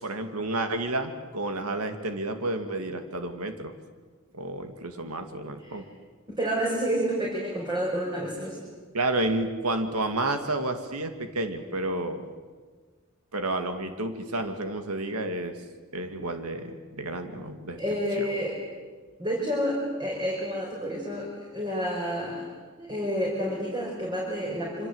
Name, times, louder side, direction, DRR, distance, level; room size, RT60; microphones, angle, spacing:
voice 1, 0.0-3.7 4.3-5.8 8.9-12.2 13.3-15.5 15.9-17.8 18.2-18.3, right 2 dB, 85° right, 6 dB, 2.3 m, -30 dB
voice 2, 6.3-8.6 17.8-18.6 19.2-22.5 22.8-24.9, equal, 20° right, -2 dB, 5.3 m, -29 dB
26.5 x 26.0 x 8.0 m, 1.4 s
head